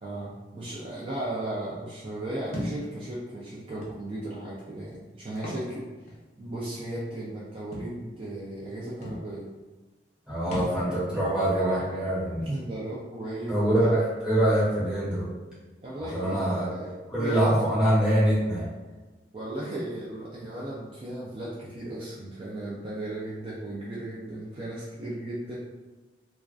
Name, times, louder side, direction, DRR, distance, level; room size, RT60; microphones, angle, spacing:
voice 1, 0.0-5.8 6.4-9.5 12.4-14.0 15.8-16.9 17.2-17.7 19.3-25.6, right 1 dB, 35° right, -7 dB, 0.3 m, -36 dB
Thump thud, 2.5-2.8 3.8-4.0 5.3-5.7 6.1-6.2 7.7-7.9 8.7-8.8 9.0-9.2 10.5-10.8, left 1 dB, 40° left, 0.5 m, -35 dB
voice 2, 10.3-12.5 13.5-15.3 16.0-16.7 17.1-18.7, right 1 dB, 5° right, -10 dB, 0.9 m, -24 dB
2.3 x 2.2 x 2.3 m, 1.2 s
head